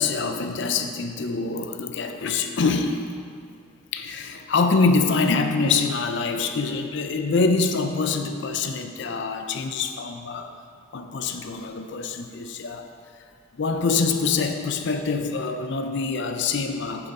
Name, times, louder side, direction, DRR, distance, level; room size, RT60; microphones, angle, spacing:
voice 1, 0.0-3.0 3.3-3.4 3.9-10.5 10.9-12.9 13.6-17.1, left 4 dB, 55° left, 6 dB, 0.4 m, -25 dB
6.9 x 6.6 x 4.1 m, 2.3 s
head